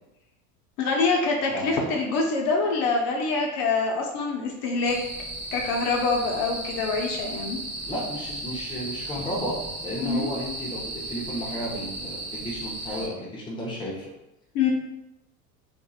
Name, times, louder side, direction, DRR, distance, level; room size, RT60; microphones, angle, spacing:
voice 1, 0.8-5.0 5.5-7.6 10.0-10.2 14.5-14.7, left 4 dB, 60° left, 0 dB, 0.7 m, -25 dB
voice 2, 1.5-2.0 7.8-14.1, equal, 10° left, -4 dB, 0.6 m, -33 dB
sound 1, 4.8-13.1, right 1 dB, 25° right, 0.9 m, -35 dB
2.7 x 2.5 x 2.3 m, 0.94 s
supercardioid pair, 95°, 46 cm